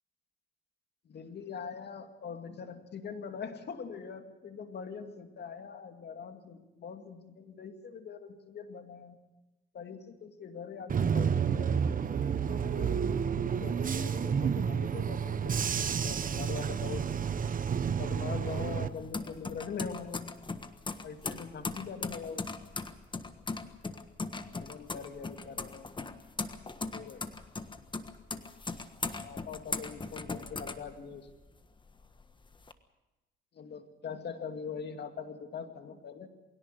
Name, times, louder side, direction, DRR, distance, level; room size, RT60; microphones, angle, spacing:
voice 1, 1.0-9.2 9.7-11.8 12.5-13.2 13.6-17.1 18.0-20.4 21.0-22.5 24.6-25.9 26.9-27.3 29.2-31.3 33.5-36.3, left 6 dB, 55° left, 6 dB, 2.3 m, -42 dB
Bus / Engine, 10.9-18.9, right 7 dB, 45° right, 1.1 m, -30 dB
sound 1, 17.7-31.5 31.9-32.7, left 3 dB, 25° left, 1.4 m, -39 dB
22.0 x 17.5 x 6.8 m, 1.0 s
cardioid pair, 90°, 20 cm